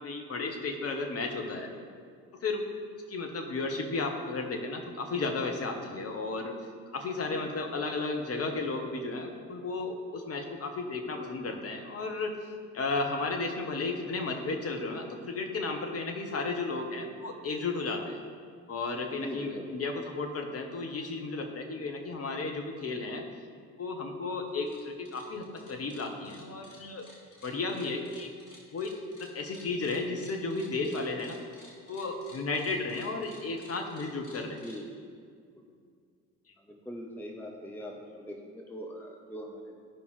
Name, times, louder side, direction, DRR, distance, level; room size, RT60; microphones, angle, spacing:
voice 1, 0.0-1.7 2.4-2.6 3.1-6.5 6.9-12.3 12.7-18.2 18.7-23.2 23.8-27.0 27.4-28.3 28.7-28.9 29.2-31.4 31.9-34.6, left 3 dB, 35° left, 3 dB, 1.3 m, -33 dB
voice 2, 19.2-19.8 34.6-35.1 35.6-35.8 36.6-39.8, equal, 5° left, 0 dB, 0.9 m, -42 dB
sound 1, 24.5-24.8 25.1-34.8, left 1 dB, 75° left, 1.6 m, -54 dB
15.0 x 5.2 x 3.2 m, 2.1 s
figure-of-eight pair, 50°, 39 cm